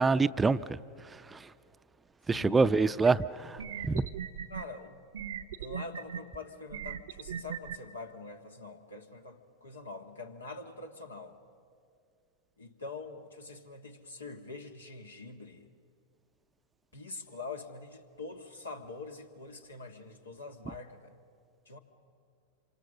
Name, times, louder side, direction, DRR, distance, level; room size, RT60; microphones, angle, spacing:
voice 1, 0.0-1.5 2.3-4.1, right 4 dB, 15° right, 14 dB, 0.5 m, -27 dB
voice 2, 2.3-2.7 4.5-5.1 5.6-11.4 12.6-15.7 16.9-21.2 21.6-21.8, left 3 dB, 90° left, 5 dB, 1.5 m, -45 dB
sound 1, 3.1-3.2 3.6-4.6 5.1-6.2 6.7-7.8, right 8 dB, 75° right, 0.7 m, -38 dB
26.5 x 25.0 x 6.6 m, 2.4 s
hypercardioid pair, 95°, 0 cm